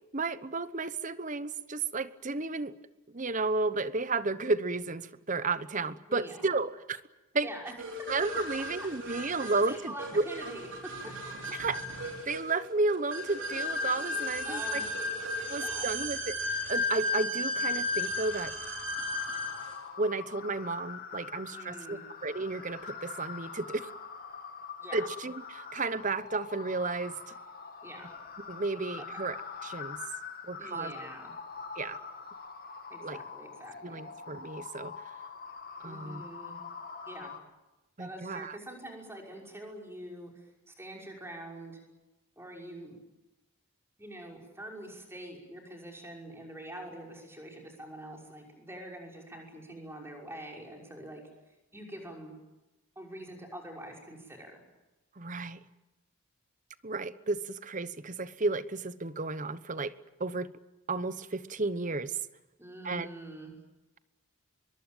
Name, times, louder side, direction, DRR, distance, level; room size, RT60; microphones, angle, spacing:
voice 1, 0.1-2.7 3.1-7.0 7.3-7.5 8.1-10.2 11.5-11.8 12.3-14.8 15.5-18.5 20.0-23.9 24.9-27.2 28.5-29.4 29.6-30.0 30.5-30.9 31.8-32.0 33.0-33.2 33.8-34.9 35.8-36.2 38.0-38.6 55.2-55.6 56.8-59.9 60.2-60.5 60.9-62.2 62.8-63.1, right 3 dB, 35° right, 14 dB, 1.0 m, -32 dB
voice 2, 6.1-6.5 7.4-7.7 9.0-10.7 14.4-15.0 15.6-16.0 21.5-22.0 24.8-25.1 27.8-28.1 29.0-29.3 30.6-31.3 32.9-34.0 35.8-36.6 37.1-37.3 38.0-41.8 42.4-43.0 44.0-51.2 51.5-52.3 53.0-54.6 62.6-63.5, right 1 dB, 10° right, 1 dB, 5.8 m, -45 dB
sound 1, 7.8-19.7, left 2 dB, 60° right, 4.7 m, -34 dB
sound 2, 18.1-37.4, left 5 dB, 45° left, 2.2 m, -44 dB
23.5 x 22.5 x 9.1 m, 1.1 s
head